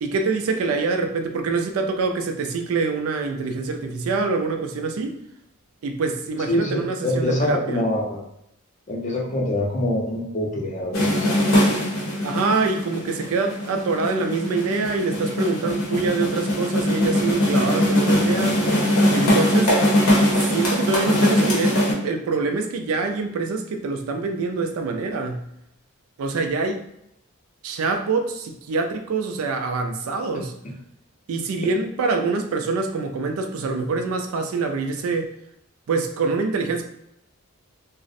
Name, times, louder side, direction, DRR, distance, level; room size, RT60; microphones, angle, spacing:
voice 1, 0.0-5.2 5.8-7.9 12.2-18.7 19.1-19.8 20.4-25.4 26.2-26.8 27.6-30.5 31.3-35.3 35.9-36.8, right 4 dB, 70° right, 0.3 m, -25 dB
voice 2, 6.5-8.2 8.9-11.3, left 1 dB, 35° left, 0.5 m, -25 dB
sound 1, 10.9-21.9, left 1 dB, 80° left, 0.7 m, -21 dB
2.4 x 2.0 x 2.5 m
head